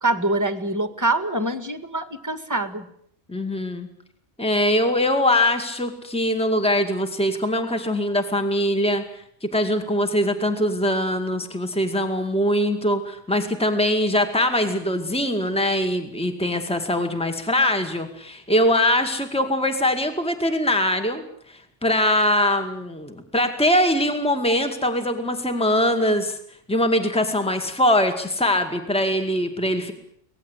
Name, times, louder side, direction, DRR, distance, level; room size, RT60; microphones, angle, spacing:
voice 1, 0.0-2.9, right 2 dB, 15° right, 10 dB, 1.9 m, -24 dB
voice 2, 3.3-3.9 4.4-26.4 26.7-29.9, left 1 dB, 5° left, 7 dB, 2.1 m, -22 dB
24.5 x 18.5 x 8.2 m, 0.69 s
omnidirectional pair, 1.3 m